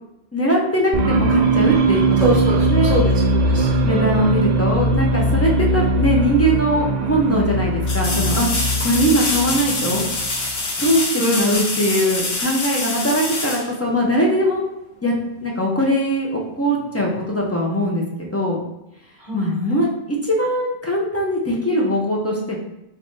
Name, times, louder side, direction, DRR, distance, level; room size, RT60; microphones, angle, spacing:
voice 1, 0.3-2.3 2.7-3.0 3.8-8.5 8.8-10.0 10.8-14.6 15.0-15.1 15.4-18.0 18.3-18.6 19.3-22.6, equal, 15° left, -2 dB, 0.6 m, -21 dB
sound 1, 0.9-10.5, right 2 dB, 60° right, 0.4 m, -20 dB
voice 2, 2.2-3.8 11.2-11.6 19.2-19.7, right 1 dB, 40° right, -7 dB, 1.4 m, -23 dB
sound 2, 6.5-6.6 7.8-14.4 17.3-17.4, left 2 dB, 65° left, 1.0 m, -25 dB
3.9 x 2.6 x 3.2 m, 0.86 s
omnidirectional pair, 1.2 m